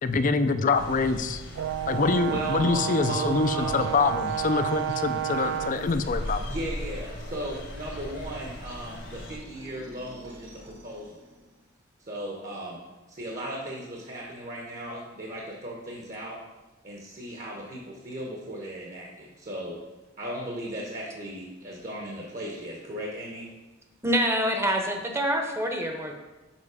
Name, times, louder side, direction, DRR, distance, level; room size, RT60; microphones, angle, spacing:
voice 1, 0.0-1.4 1.9-6.4, left 4 dB, 40° left, 10 dB, 0.4 m, -25 dB
sound 1, 0.7-9.4, left 1 dB, 65° left, 1.3 m, -39 dB
Brass instrument, 1.6-6.0, right 11 dB, 75° right, 0.3 m, -30 dB
voice 2, 2.3-3.9 6.4-11.2 12.0-12.8 13.1-16.4 16.8-19.8 20.2-23.5, right 1 dB, 40° right, -1 dB, 1.1 m, -37 dB
sound 2, 5.3-11.7, right 1 dB, 60° right, 1.5 m, -48 dB
voice 3, 24.0-26.1, equal, 15° right, 3 dB, 0.8 m, -26 dB
7.2 x 5.4 x 4.8 m, 1.1 s
head